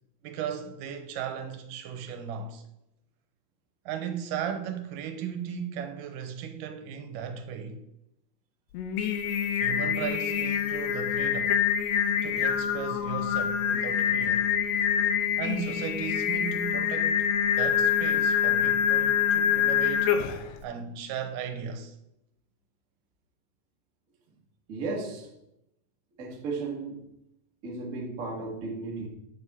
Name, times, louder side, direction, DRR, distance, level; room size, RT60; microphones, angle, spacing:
voice 1, 0.2-2.6 3.9-7.8 9.6-11.6 12.2-14.5 15.4-17.3 17.6-20.2 20.6-22.0, right 7 dB, 80° right, 2.3 m, -36 dB
Singing, 8.7-20.5, left 8 dB, 75° left, 1.7 m, -26 dB
voice 2, 24.7-25.3 26.2-27.1 27.6-29.1, right 3 dB, 45° right, 1.0 m, -34 dB
8.5 x 6.7 x 3.6 m
omnidirectional pair, 3.8 m